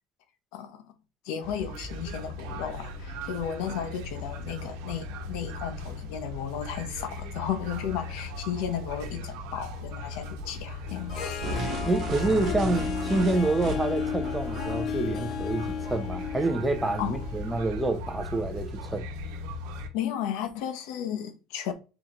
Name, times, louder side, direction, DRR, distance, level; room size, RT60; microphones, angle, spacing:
voice 1, 0.5-0.8 1.2-11.5 17.0-17.2 19.9-21.7, left 9 dB, 70° left, 0.8 m, -34 dB
sound 1, 1.4-19.9, left 2 dB, 80° right, 1.0 m, -37 dB
Harp, 10.9-18.0, left 7 dB, 40° left, 0.5 m, -35 dB
sound 2, 11.4-14.1, right 2 dB, 35° right, 1.2 m, -34 dB
voice 2, 11.8-19.1, right 2 dB, 5° right, 0.6 m, -28 dB
3.9 x 3.8 x 2.9 m
cardioid pair, 160°, 0 cm